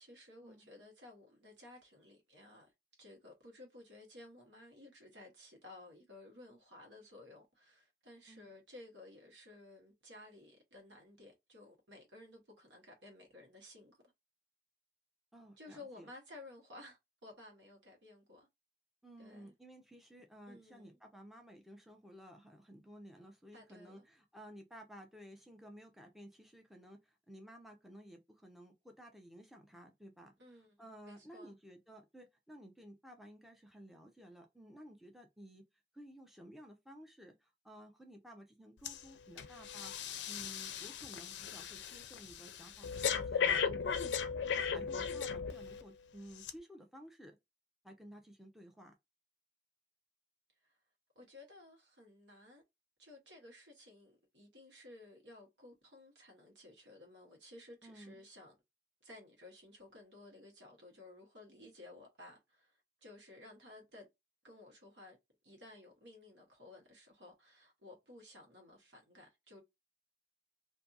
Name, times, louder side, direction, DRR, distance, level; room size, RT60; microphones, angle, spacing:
voice 1, 0.0-2.7 3.0-14.0 15.6-18.5 19.2-19.5 20.5-21.0 23.5-24.0 30.4-31.5 50.6-50.8 51.1-52.6 53.0-58.6 59.0-64.1 64.4-65.2 65.4-69.6, left 2 dB, 90° right, 1.2 m, -56 dB
voice 2, 15.3-16.1 19.0-35.6 35.9-39.9 40.3-43.7 44.4-47.4 47.8-48.9 57.8-58.2, equal, ahead, 0.5 m, -55 dB
Breathing, 38.8-39.0 39.4-45.8 46.4-46.5, left 6 dB, 85° left, 0.4 m, -37 dB
2.6 x 2.6 x 2.4 m
head